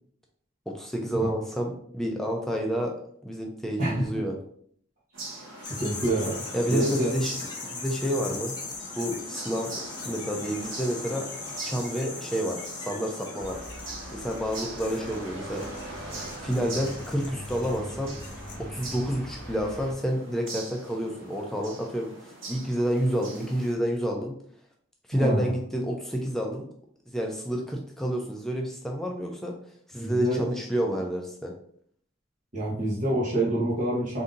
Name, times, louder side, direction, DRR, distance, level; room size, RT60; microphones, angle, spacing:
voice 1, 0.7-2.9 3.2-4.4 6.5-7.3 7.8-8.6 9.0-9.7 10.0-11.3 11.6-13.6 14.1-15.6 16.4-18.2 18.6-24.4 25.1-26.7 27.1-29.5 29.9-31.5, equal, ahead, 0 dB, 0.4 m, -29 dB
sound 1, 5.1-23.7, right 2 dB, 65° right, 1.0 m, -41 dB
sound 2, 5.6-18.6, left 4 dB, 20° left, 1.0 m, -40 dB
voice 2, 5.7-6.4 6.7-7.1 25.1-25.5 30.0-30.4 32.5-34.2, right 1 dB, 40° right, -5 dB, 1.1 m, -27 dB
sound 3, 13.4-19.9, equal, 90° right, 1.7 m, -43 dB
3.8 x 2.7 x 3.8 m, 0.63 s
head